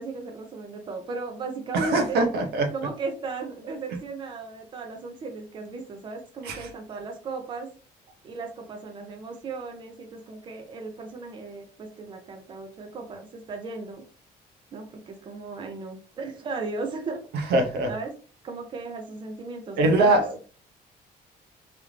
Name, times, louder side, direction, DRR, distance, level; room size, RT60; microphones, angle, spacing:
voice 1, 0.0-2.2 2.7-7.7 8.2-14.0 14.7-17.2 17.9-18.1 18.4-20.2, right 3 dB, 30° right, 3 dB, 0.6 m, -36 dB
voice 2, 1.7-2.7 6.4-6.7 17.3-17.9 19.8-20.5, right 2 dB, 85° right, 4 dB, 0.8 m, -22 dB
3.3 x 2.5 x 3.1 m, 0.38 s
cardioid pair, 170°, 16 cm